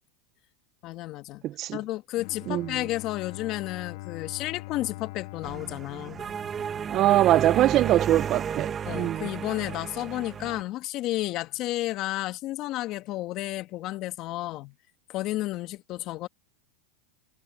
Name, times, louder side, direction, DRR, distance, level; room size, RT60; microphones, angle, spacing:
voice 1, 0.8-1.4 1.7-6.3 8.8-14.7 15.1-16.3, left 16 dB, 45° left, 1.7 m, -32 dB
voice 2, 1.4-1.8 2.5-2.7 6.9-9.3, right 14 dB, 40° right, 0.6 m, -23 dB
Bowed string instrument, 2.1-7.1, left 18 dB, 65° left, 1.6 m, -43 dB
sound 1, 5.4-10.6, right 7 dB, 25° right, 1.1 m, -33 dB
supercardioid pair, 120°, 0 cm